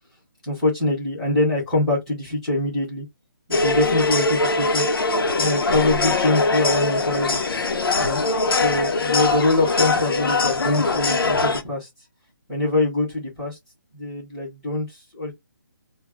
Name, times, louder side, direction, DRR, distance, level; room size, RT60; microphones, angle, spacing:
voice 1, 0.4-3.0 3.6-4.9 5.3-7.4 8.0-8.2 8.5-11.9 12.5-13.6 13.9-15.3, left 2 dB, ahead, 0.3 m, -24 dB
sound 1, 3.5-11.6, left 3 dB, 85° left, 0.7 m, -22 dB
2.1 x 2.0 x 3.1 m
hypercardioid pair, 175°, 12 cm